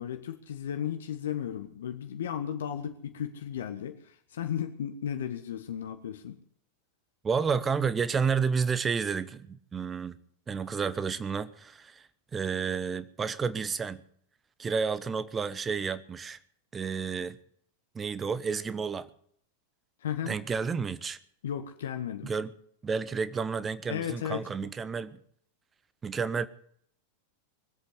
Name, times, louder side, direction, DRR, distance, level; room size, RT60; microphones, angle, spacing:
voice 1, 0.0-6.4 20.0-20.4 21.4-22.3 23.9-24.5, left 9 dB, 60° left, 1.3 m, -35 dB
voice 2, 7.2-10.2 10.5-14.0 14.6-16.4 16.7-17.4 17.9-19.1 20.3-21.2 22.2-22.5 22.8-25.2 26.0-26.5, right 5 dB, 20° right, 1.0 m, -31 dB
22.0 x 8.1 x 8.0 m
figure-of-eight pair, 90°, 0 cm